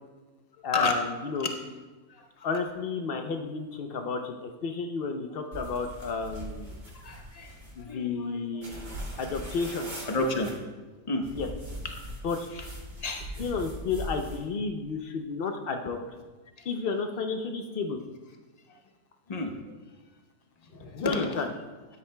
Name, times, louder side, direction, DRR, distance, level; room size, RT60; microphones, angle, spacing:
voice 1, 0.6-1.5 2.4-6.7 7.8-9.9 11.3-11.5 12.2-12.5 13.4-16.0 16.7-18.0 20.9-21.5, left 4 dB, 90° left, 5 dB, 0.5 m, -32 dB
voice 2, 2.1-2.5 5.5-5.7 6.9-7.5 7.8-8.5 10.0-10.5 11.1-11.3 11.8-11.9 12.5-12.7 13.0-13.4 19.3-19.6 20.7-21.5, left 2 dB, 35° left, 3 dB, 0.7 m, -31 dB
sound 1, 5.5-7.8 8.6-10.5 11.2-14.5, equal, 45° right, 2.5 m, -41 dB
12.5 x 9.6 x 2.2 m, 1.3 s
omnidirectional pair, 1.8 m